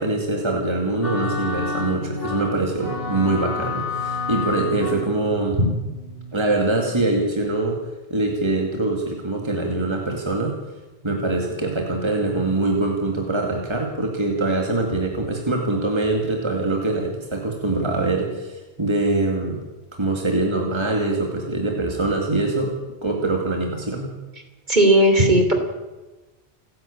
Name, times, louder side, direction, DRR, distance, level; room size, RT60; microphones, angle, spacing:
voice 1, 0.0-5.6 6.3-7.8 8.1-10.6 11.0-19.6 20.0-22.8 23.0-24.1, right 2 dB, 25° right, 1 dB, 2.5 m, -23 dB
sound 1, 1.0-6.8, left 3 dB, 60° left, 3.3 m, -30 dB
voice 2, 24.7-25.5, right 1 dB, 45° right, 5 dB, 3.4 m, -15 dB
29.5 x 11.0 x 8.7 m, 1.1 s
omnidirectional pair, 1.1 m